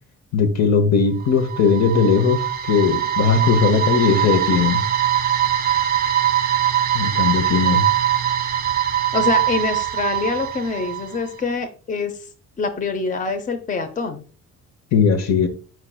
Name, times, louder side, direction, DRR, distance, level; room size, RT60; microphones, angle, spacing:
voice 1, 0.3-4.8 6.9-7.8 14.9-15.5, left 5 dB, 60° left, 0.8 m, -18 dB
sound 1, 1.2-11.3, right 11 dB, 30° right, 0.5 m, -22 dB
voice 2, 9.1-12.1 12.6-14.2, left 4 dB, 25° left, 0.6 m, -25 dB
4.6 x 4.6 x 2.2 m
cardioid pair, 90°, 30 cm